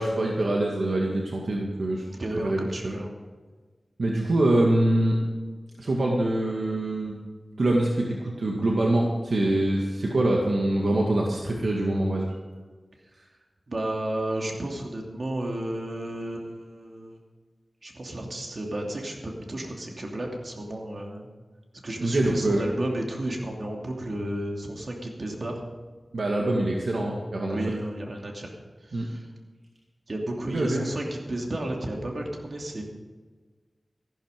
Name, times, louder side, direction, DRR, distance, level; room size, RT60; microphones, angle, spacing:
voice 1, 0.0-2.0 2.4-2.9 4.0-5.2 5.8-7.2 7.6-12.3 22.0-22.6 26.1-27.7 28.9-29.1 30.5-30.8, right 1 dB, 75° right, -1 dB, 1.9 m, -24 dB
voice 2, 2.1-3.1 13.7-17.2 17.8-21.3 21.8-25.6 27.5-28.5 28.8-29.2 30.1-32.8, right 1 dB, 55° right, 1 dB, 2.7 m, -32 dB
14.5 x 12.5 x 5.2 m, 1.4 s
wide cardioid pair, 75°, 0 cm